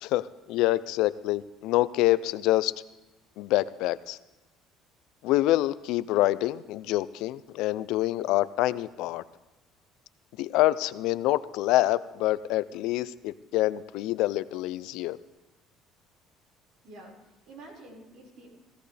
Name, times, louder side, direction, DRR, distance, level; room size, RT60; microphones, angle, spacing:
voice 1, 0.0-2.7 3.4-4.2 5.2-9.2 10.4-15.2, left 16 dB, 75° left, 16 dB, 0.5 m, -26 dB
voice 2, 16.8-18.5, right 2 dB, 60° right, -2 dB, 4.9 m, -48 dB
17.0 x 16.5 x 3.4 m, 1.0 s
cardioid pair, 150°, 0 cm